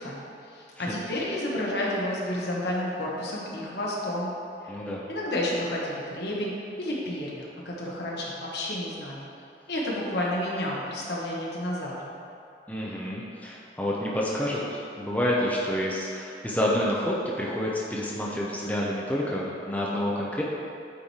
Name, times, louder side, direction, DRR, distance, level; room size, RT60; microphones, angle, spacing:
voice 1, 0.0-4.3 4.6-4.8 5.1-6.5 6.8-9.2 9.7-12.1, left 1 dB, 65° left, -4 dB, 1.1 m, -31 dB
voice 2, 4.7-5.1 12.7-20.4, left 1 dB, 10° left, -5 dB, 0.5 m, -28 dB
8.5 x 3.2 x 4.2 m, 2.6 s
head